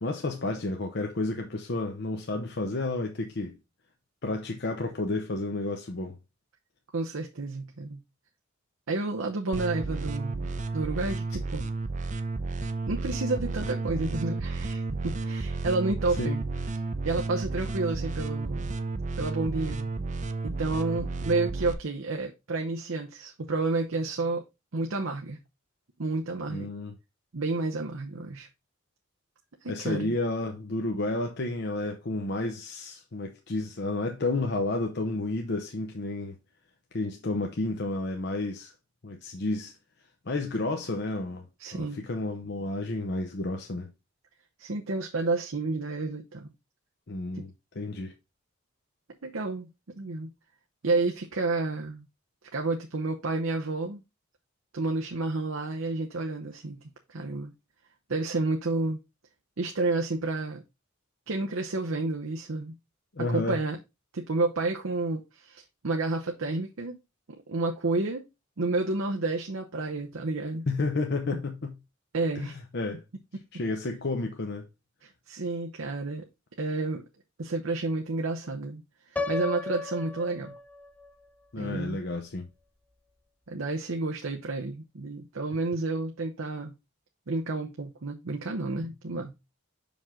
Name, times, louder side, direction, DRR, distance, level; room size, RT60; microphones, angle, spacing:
voice 1, 0.0-3.6 4.2-6.2 16.2-16.4 26.5-26.9 29.7-36.4 36.9-38.7 39.0-39.7 40.3-41.5 41.7-43.9 47.1-48.1 63.2-63.6 70.7-71.7 72.3-73.0 73.5-74.7 81.5-82.5, left 2 dB, 55° left, 0.8 m, -31 dB
voice 2, 6.9-8.0 8.9-10.5 10.7-11.7 12.9-16.4 17.0-18.7 19.2-19.9 20.4-24.4 24.7-25.4 26.0-26.7 27.3-28.5 29.6-30.1 41.6-42.0 44.6-46.5 47.3-47.4 49.2-49.7 50.0-50.3 50.8-52.0 52.5-54.0 54.7-56.8 57.1-57.5 58.1-59.0 59.6-60.6 61.3-62.7 63.3-63.8 64.1-67.0 67.5-68.3 68.6-70.6 72.1-72.6 75.0-76.2 76.6-77.0 77.4-78.8 79.3-80.5 81.6-82.0 83.5-86.7 87.3-89.3, right 3 dB, 85° right, 0.8 m, -30 dB
sound 1, 9.5-21.7, right 3 dB, 35° right, 0.6 m, -32 dB
Piano, 79.2-81.1, left 3 dB, 10° left, 0.3 m, -34 dB
6.0 x 5.2 x 3.6 m
head